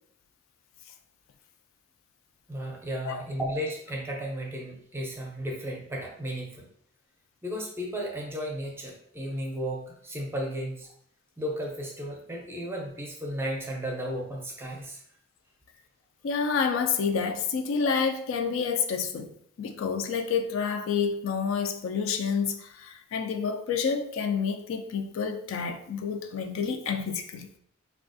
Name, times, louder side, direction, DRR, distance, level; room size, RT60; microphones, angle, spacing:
voice 1, 2.5-6.7 7.4-10.9 11.4-15.0, equal, 10° right, -1 dB, 0.5 m, -34 dB
voice 2, 16.2-19.3 19.6-27.5, left 6 dB, 70° left, 6 dB, 0.3 m, -29 dB
3.3 x 2.3 x 2.5 m, 0.67 s
head